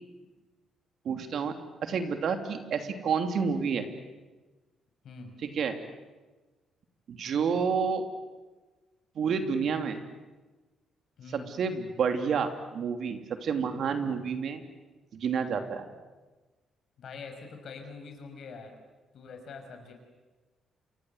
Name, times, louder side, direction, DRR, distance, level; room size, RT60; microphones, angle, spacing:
voice 1, 1.0-1.6 1.8-3.9 5.4-5.8 7.1-8.1 9.1-10.0 11.5-14.6 15.1-15.8, right 6 dB, 65° right, 6 dB, 3.0 m, -29 dB
voice 2, 11.2-11.5 17.0-18.7 19.1-19.9, left 4 dB, 65° left, 5 dB, 6.0 m, -44 dB
28.0 x 24.0 x 8.1 m, 1.2 s
cardioid pair, 90°, 0 cm